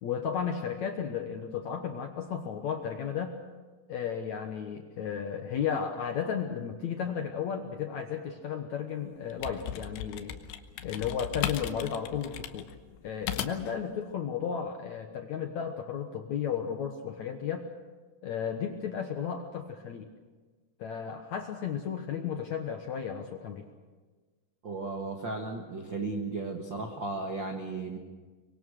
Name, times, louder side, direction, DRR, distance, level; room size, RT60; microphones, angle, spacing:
voice 1, 0.0-3.4 3.9-10.4 10.8-12.7 13.0-17.7 18.2-20.1 20.8-23.7, left 7 dB, 65° left, 4 dB, 1.9 m, -34 dB
sound 1, 9.1-13.8, left 10 dB, 85° left, 3.2 m, -37 dB
voice 2, 24.6-28.0, right 3 dB, 65° right, 3 dB, 1.1 m, -35 dB
24.5 x 23.0 x 6.4 m, 1.3 s
omnidirectional pair, 4.8 m